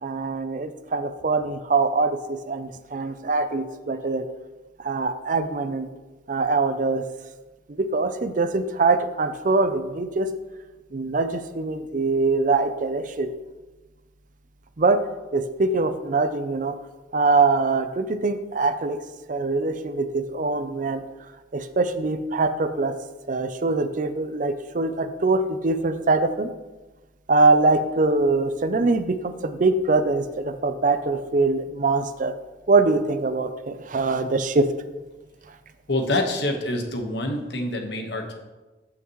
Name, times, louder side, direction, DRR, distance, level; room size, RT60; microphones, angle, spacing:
voice 1, 0.0-4.3 4.8-5.9 6.3-7.1 7.7-10.3 10.9-13.3 14.8-15.0 15.3-16.8 17.1-19.0 19.3-21.0 21.5-22.9 23.3-26.5 27.3-32.3 32.7-34.7, right 3 dB, 45° right, 10 dB, 0.5 m, -23 dB
voice 2, 35.9-38.3, left 1 dB, 65° left, 3 dB, 1.3 m, -26 dB
14.0 x 5.8 x 3.1 m, 1.2 s
head